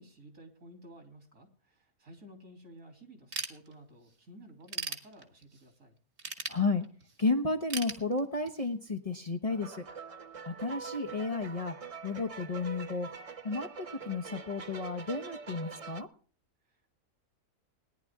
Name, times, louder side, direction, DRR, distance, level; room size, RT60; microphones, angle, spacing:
voice 1, 0.0-6.0 16.7-16.9, right 1 dB, 70° right, 4 dB, 3.3 m, -53 dB
Ratchet pawl / Tools, 3.3-4.1 4.5-5.6 6.2-7.2 7.7-8.7, right 4 dB, 55° right, 2.0 m, -38 dB
voice 2, 6.5-6.9 7.2-9.8 10.5-11.7 12.0-13.1 13.4-13.7 14.1-16.1, left 3 dB, 30° left, 5 dB, 0.9 m, -32 dB
sound 1, 9.5-16.0, right 6 dB, 35° right, 0.6 m, -44 dB
18.5 x 10.5 x 3.5 m, 0.41 s
omnidirectional pair, 1.5 m